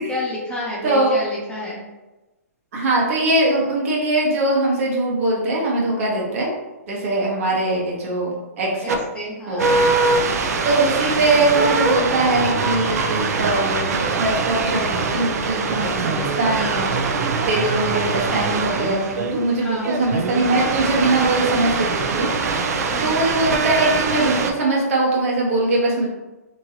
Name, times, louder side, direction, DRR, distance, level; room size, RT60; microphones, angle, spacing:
voice 1, 0.0-1.8 8.8-9.8 19.6-19.9 22.9-23.2, left 1 dB, 10° left, -5 dB, 0.7 m, -30 dB
voice 2, 2.7-6.5 6.9-9.0 9.5-9.6 10.6-16.9 17.5-22.3 23.0-26.1, right 2 dB, 55° right, -3 dB, 1.0 m, -21 dB
Colorino Talking Color Identifier and Light Probe AM Radio, 8.9-9.0 9.6-24.5, right 4 dB, 70° right, 0.5 m, -22 dB
3.0 x 2.6 x 2.8 m, 1.1 s
hypercardioid pair, 140°, 9 cm